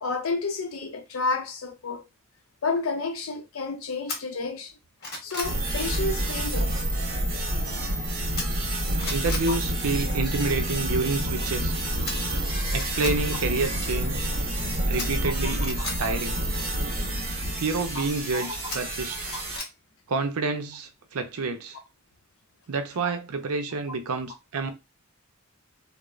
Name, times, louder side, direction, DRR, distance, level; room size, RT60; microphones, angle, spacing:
voice 1, 0.0-2.0 2.6-4.7 5.2-6.7 15.2-15.3 15.8-16.1 17.9-18.0 18.3-18.7 19.3-19.4, left 3 dB, 70° left, 0.6 m, -31 dB
sound 1, 4.1-4.2 4.7-5.6 8.4-8.7 9.0-9.5 12.1-12.2 12.7-13.2 15.0-16.0 18.7-19.7 20.1-20.2, left 2 dB, 45° left, 1.0 m, -34 dB
sound 2, 5.4-19.6, right 1 dB, 40° right, 0.9 m, -28 dB
voice 2, 9.1-11.8 12.7-14.2 14.9-16.4 17.6-19.3 20.1-21.8 22.7-24.7, right 3 dB, 85° right, 0.5 m, -29 dB
3.0 x 2.0 x 2.4 m
head